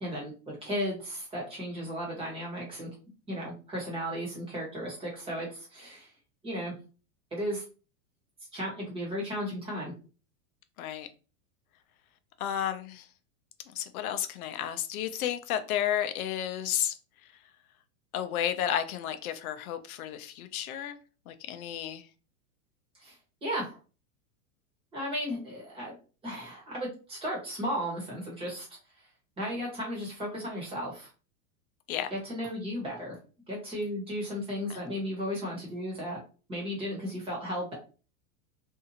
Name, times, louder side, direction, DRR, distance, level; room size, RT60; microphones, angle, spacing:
voice 1, 0.0-2.9 3.3-6.1 6.4-6.7 7.3-7.6 8.5-9.9 23.0-23.8 24.9-25.9 26.2-28.7 29.4-31.1 32.1-33.2 33.5-36.2 36.5-37.7, equal, 15° right, 1.1 m, -35 dB
voice 2, 12.4-13.0 13.7-16.9 18.1-21.0 21.3-22.1 31.9-32.1 34.7-34.8, left 10 dB, 85° left, 0.6 m, -32 dB
2.7 x 2.4 x 2.7 m
supercardioid pair, 160°, 42 cm